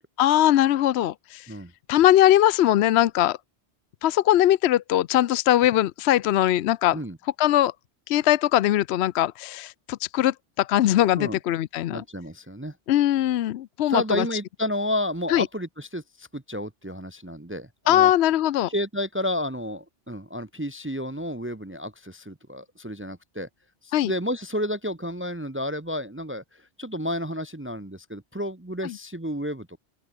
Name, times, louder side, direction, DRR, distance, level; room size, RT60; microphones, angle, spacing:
voice 1, 0.2-1.5 1.9-3.4 4.0-7.0 7.4-7.7 8.1-12.0 12.9-14.3 15.3-15.5 17.9-18.7 23.9-24.1 28.8-28.9, left 13 dB, 75° left, 0.8 m, -21 dB
voice 2, 11.9-12.8 13.9-18.1 18.7-23.5 23.8-29.8, left 1 dB, 10° right, 0.9 m, -31 dB
open air
omnidirectional pair, 1.2 m